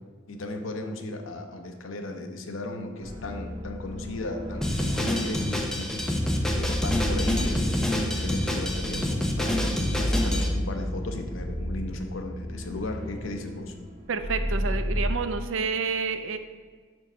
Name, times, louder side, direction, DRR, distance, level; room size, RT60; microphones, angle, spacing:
voice 1, 0.3-9.6 10.0-13.7, left 1 dB, 75° left, 4 dB, 0.8 m, -35 dB
sound 1, 3.0-15.1, equal, 20° right, 2.1 m, -32 dB
Drum kit, 4.6-10.5, left 1 dB, 5° left, 0.7 m, -28 dB
voice 2, 14.1-16.4, right 5 dB, 70° right, 9 dB, 0.6 m, -29 dB
5.3 x 4.6 x 6.2 m, 1.5 s
head